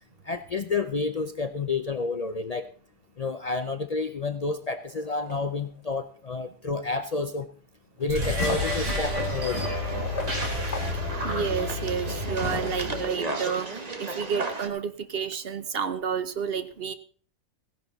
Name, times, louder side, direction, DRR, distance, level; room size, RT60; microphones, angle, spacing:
voice 1, 0.3-2.7 3.2-7.5 8.0-9.7, left 4 dB, 40° left, 10 dB, 0.6 m, -30 dB
sound 1, 4.9-5.9 6.9-7.0 8.0-11.8, left 3 dB, 65° left, 1.6 m, -39 dB
sound 2, 8.0-13.1, left 1 dB, 75° right, 3.8 m, -29 dB
sound 3, 8.9-14.7, right 3 dB, 35° right, 1.4 m, -36 dB
voice 2, 11.2-16.9, right 7 dB, 55° right, 12 dB, 0.9 m, -30 dB
16.0 x 10.5 x 4.0 m, 0.43 s
omnidirectional pair, 1.3 m